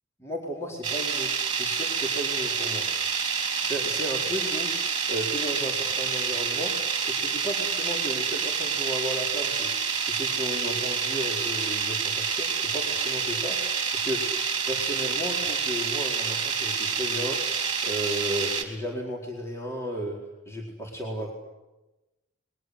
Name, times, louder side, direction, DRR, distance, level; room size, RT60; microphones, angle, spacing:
voice 1, 0.2-2.9 3.6-4.7 5.1-6.7 7.0-9.7 10.0-13.6 13.9-14.2 14.7-17.4 17.8-20.2 20.5-21.3, equal, 15° left, -1 dB, 4.4 m, -34 dB
sound 1, 0.8-18.6, right 6 dB, 25° right, 3.7 m, -28 dB
29.0 x 22.5 x 8.0 m, 1.0 s
head